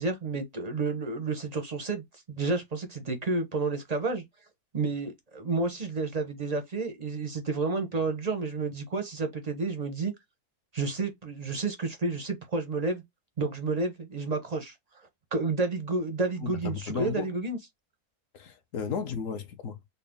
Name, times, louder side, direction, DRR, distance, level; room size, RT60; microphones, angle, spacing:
voice 1, 0.0-4.2 4.7-10.1 10.7-13.0 13.4-14.7 15.3-17.6, right 3 dB, 50° right, 0.4 m, -30 dB
voice 2, 16.4-17.3 18.3-19.8, left 6 dB, 60° left, 1.0 m, -34 dB
4.1 x 2.2 x 3.4 m
omnidirectional pair, 1.7 m